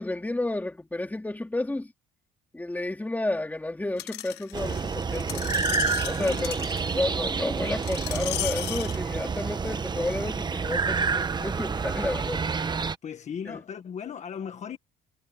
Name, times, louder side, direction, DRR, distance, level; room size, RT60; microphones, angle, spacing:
voice 1, 0.0-1.9 2.5-5.5 6.1-6.6 6.9-12.5 13.4-13.6, left 2 dB, 10° left, 3.4 m, -31 dB
Screech, 4.0-9.0 9.7-9.8, left 17 dB, 85° left, 0.7 m, -35 dB
sound 1, 4.5-12.9, right 5 dB, 25° right, 1.1 m, -29 dB
voice 2, 6.2-6.5 13.0-14.8, left 7 dB, 45° left, 1.5 m, -37 dB
cardioid pair, 110°, 17 cm